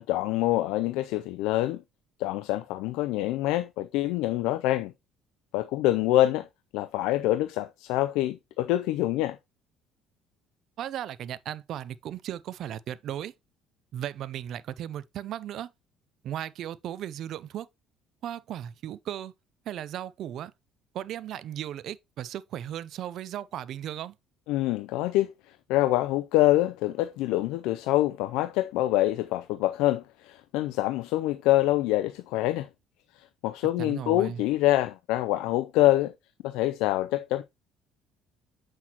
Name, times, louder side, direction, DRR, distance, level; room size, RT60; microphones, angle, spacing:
voice 1, 0.0-1.8 2.2-4.9 5.5-6.5 6.7-9.4 24.5-25.3 25.7-32.7 33.1-36.1 36.4-37.4, left 15 dB, 85° left, 0.4 m, -25 dB
voice 2, 10.8-13.3 13.9-15.7 16.2-17.7 18.2-19.3 19.7-20.5 20.9-24.1 33.8-34.4, right 11 dB, 60° right, 0.5 m, -36 dB
7.5 x 6.0 x 2.9 m
cardioid pair, 105°, 0 cm